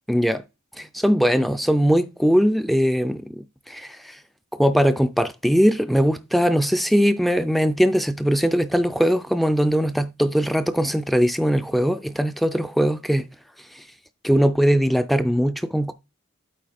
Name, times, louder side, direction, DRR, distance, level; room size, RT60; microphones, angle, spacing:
voice 1, 0.1-0.4 0.8-4.2 4.5-13.3 13.7-13.8 14.2-15.9, equal, ahead, 0.3 m, -20 dB
8.6 x 3.2 x 5.1 m
head